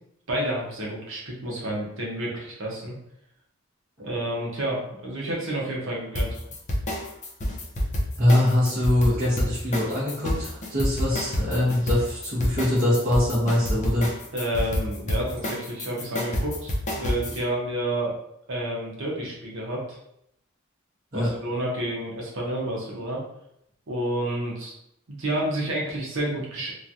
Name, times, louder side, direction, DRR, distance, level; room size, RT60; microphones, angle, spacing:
voice 1, 0.3-2.9 4.0-6.4 14.3-18.2 18.5-20.0 21.1-23.2 23.9-24.7 25.1-26.7, right 1 dB, 65° right, -3 dB, 0.9 m, -30 dB
sound 1, 6.1-17.4, equal, 35° left, 0.6 m, -28 dB
voice 2, 8.2-14.1 21.1-21.3, left 1 dB, 45° right, -12 dB, 1.1 m, -23 dB
3.1 x 2.3 x 2.6 m, 0.77 s
head